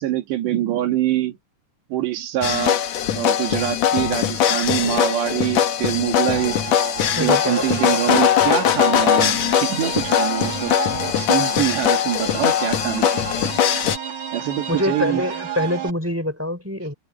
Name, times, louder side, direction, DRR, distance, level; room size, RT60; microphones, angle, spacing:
voice 1, 0.0-1.4 1.9-2.8 3.1-6.6 7.2-10.8 11.2-13.2 13.7-13.9 14.3-15.2, right 12 dB, 75° right, 4.4 m, -24 dB
sound 1, 2.4-14.0, left 10 dB, 80° left, 1.5 m, -21 dB
sound 2, 6.3-15.9, right 8 dB, 45° right, 3.8 m, -32 dB
voice 2, 7.2-8.1 14.7-16.9, left 1 dB, 5° right, 2.9 m, -25 dB
omnidirectional pair, 5.0 m